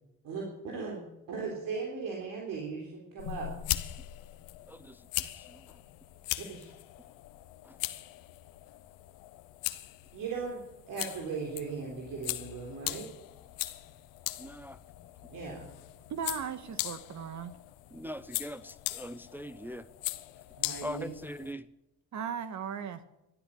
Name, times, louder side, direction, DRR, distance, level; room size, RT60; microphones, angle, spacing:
voice 1, 0.2-3.5 6.4-6.7 10.1-10.6 10.9-13.1 15.3-15.8 20.6-21.1, right 5 dB, 75° right, -1 dB, 3.7 m, -38 dB
sound 1, 3.2-21.5, left 17 dB, 90° left, 0.9 m, -40 dB
voice 2, 4.7-5.7 7.6-7.8 14.4-14.8 17.9-19.9 20.8-21.7, equal, 5° right, 11 dB, 0.6 m, -42 dB
voice 3, 16.1-17.5 22.1-23.0, right 7 dB, 55° right, 12 dB, 1.6 m, -37 dB
13.0 x 11.5 x 8.4 m, 0.93 s
cardioid pair, 85°, 33 cm